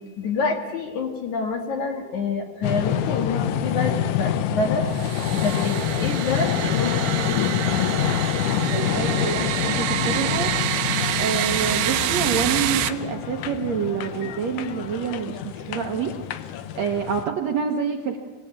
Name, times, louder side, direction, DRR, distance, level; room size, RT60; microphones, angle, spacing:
voice 1, 0.2-4.9 5.3-7.9, left 4 dB, 55° left, 3 dB, 3.2 m, -27 dB
sound 1, 2.6-17.2, left 9 dB, 70° left, 2.1 m, -26 dB
sound 2, 4.9-12.9, right 13 dB, 85° right, 2.8 m, -27 dB
voice 2, 8.7-10.5 11.2-16.1 16.8-18.2, right 6 dB, 60° right, 3 dB, 1.9 m, -27 dB
24.5 x 17.5 x 8.8 m, 1.4 s
omnidirectional pair, 4.4 m